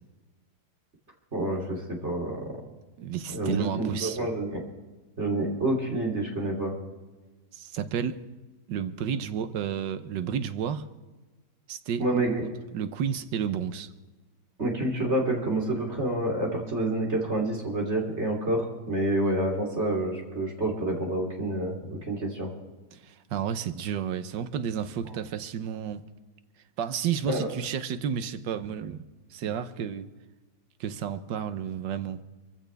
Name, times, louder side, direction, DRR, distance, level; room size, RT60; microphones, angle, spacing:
voice 1, 1.3-2.4 3.3-4.6 5.2-6.7 12.0-12.4 14.6-22.5 27.3-27.5, right 1 dB, 40° right, 0 dB, 3.4 m, -28 dB
voice 2, 3.0-4.2 7.5-8.2 8.7-10.8 11.7-12.0 12.7-13.9 22.9-26.0 26.8-29.0 29.3-30.1 30.8-32.2, right 8 dB, 90° right, 11 dB, 1.5 m, -31 dB
25.0 x 15.0 x 3.4 m, 1.2 s
omnidirectional pair, 1.9 m